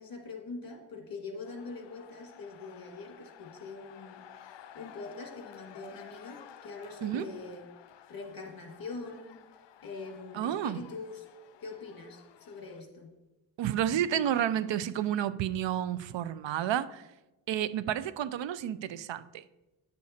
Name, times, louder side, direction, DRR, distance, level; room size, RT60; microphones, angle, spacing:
voice 1, 0.0-4.2 4.7-7.7 8.1-9.4 9.8-11.2 11.6-13.1, left 3 dB, 55° left, 1.6 m, -43 dB
sound 1, 1.4-12.8, left 10 dB, 75° left, 0.6 m, -53 dB
voice 2, 10.3-10.8 13.6-17.0 17.5-19.4, right 10 dB, 85° right, 0.5 m, -31 dB
9.4 x 6.6 x 4.2 m
wide cardioid pair, 150°, 43 cm